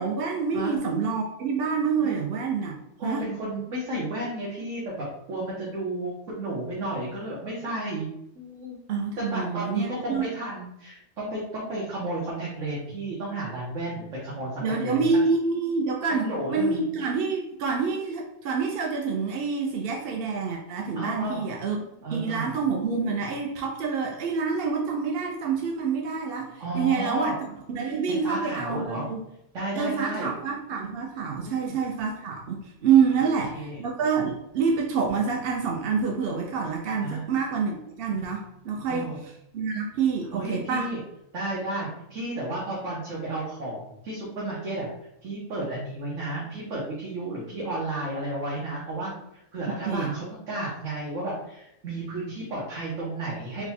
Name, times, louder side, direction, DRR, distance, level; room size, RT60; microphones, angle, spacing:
voice 1, 0.0-2.7 3.0-3.3 8.9-10.3 14.6-21.8 22.1-27.3 27.7-29.2 29.8-39.1 39.5-40.9 49.9-50.1, right 5 dB, 60° right, 1 dB, 0.7 m, -27 dB
voice 2, 3.0-8.1 8.3-8.8 9.2-15.1 16.2-16.9 20.9-21.4 22.0-22.5 26.6-27.3 28.1-29.1 29.5-30.3 31.4-31.8 33.2-33.8 37.0-37.3 38.2-38.3 38.9-39.2 40.3-41.0 41.3-44.9 45.2-53.7, right 2 dB, 85° right, -6 dB, 1.4 m, -32 dB
4.0 x 2.3 x 4.2 m, 0.80 s
omnidirectional pair, 1.3 m